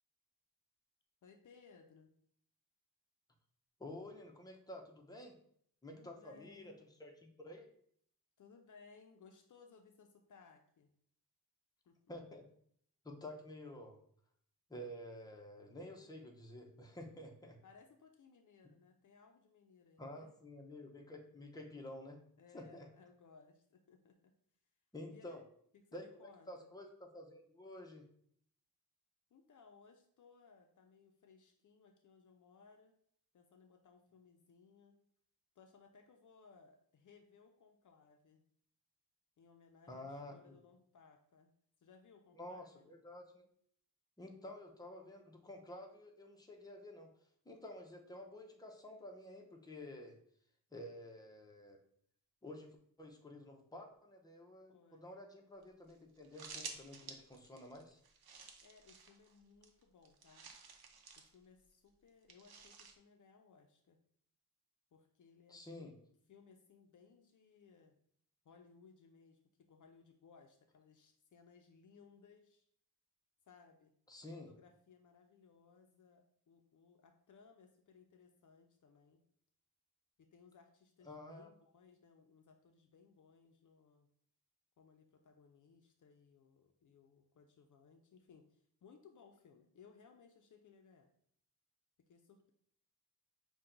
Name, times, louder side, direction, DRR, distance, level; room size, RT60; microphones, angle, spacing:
voice 1, 1.2-2.1 5.9-6.8 8.4-10.9 11.8-12.0 17.6-20.3 22.4-24.3 25.1-25.4 25.7-26.7 29.3-32.9 33.3-35.0 35.6-38.4 39.4-41.5 41.8-42.9 54.7-55.1 56.0-56.1 58.6-60.5 61.2-64.0 64.9-65.9 66.3-68.0 68.4-69.4 69.7-72.6 73.4-73.9 74.3-79.2 80.2-84.1 84.8-91.1 92.1-92.5, left 5 dB, 55° left, 5 dB, 0.5 m, -63 dB
voice 2, 3.8-5.4 5.8-7.7 12.1-12.5 13.0-14.0 14.7-17.6 20.0-22.2 22.5-22.9 24.9-25.4 25.9-28.1 39.9-40.5 42.3-43.5 44.2-47.1 47.4-50.2 50.7-51.8 52.4-58.0 65.5-65.9 74.1-74.5 81.1-81.5, left 1 dB, 10° left, 1 dB, 0.7 m, -51 dB
sound 1, 55.6-55.7 55.9-56.0 56.2-59.4 59.6-61.3 62.3-63.0, right 5 dB, 75° right, 0.7 m, -52 dB
5.6 x 2.3 x 3.8 m, 0.65 s
wide cardioid pair, 100°, 37 cm